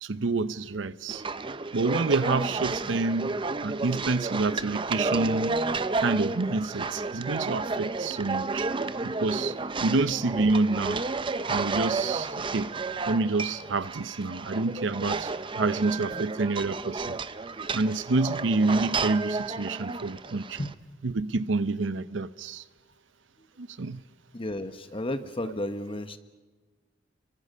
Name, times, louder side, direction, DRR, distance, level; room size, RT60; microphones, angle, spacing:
voice 1, 0.0-1.2 1.7-5.6 6.0-8.7 9.0-11.0 11.5-12.7 13.1-17.2 17.7-20.6 21.0-22.6 23.6-24.0, right 3 dB, 85° right, 0.7 m, -28 dB
sound 1, 1.1-20.7, right 3 dB, 25° right, 0.6 m, -31 dB
voice 2, 24.3-26.2, left 1 dB, 30° left, 1.2 m, -33 dB
29.5 x 23.5 x 5.5 m
head